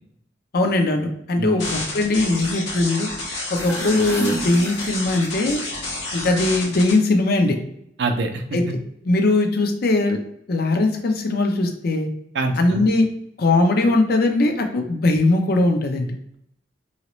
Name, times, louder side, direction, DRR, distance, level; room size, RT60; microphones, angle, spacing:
voice 1, 0.5-3.1 3.5-5.6 6.1-7.6 8.5-8.8 9.0-10.2 10.5-12.1 12.5-13.1 13.4-16.1, left 2 dB, 60° left, 4 dB, 0.6 m, -20 dB
sound 1, 1.6-6.9, left 2 dB, 85° left, 1.3 m, -30 dB
sound 2, 3.4-5.5, right 2 dB, 15° left, 0.7 m, -31 dB
voice 2, 8.0-8.7 12.3-12.8, right 3 dB, 70° right, 5 dB, 0.5 m, -25 dB
2.9 x 2.8 x 3.0 m, 0.75 s
head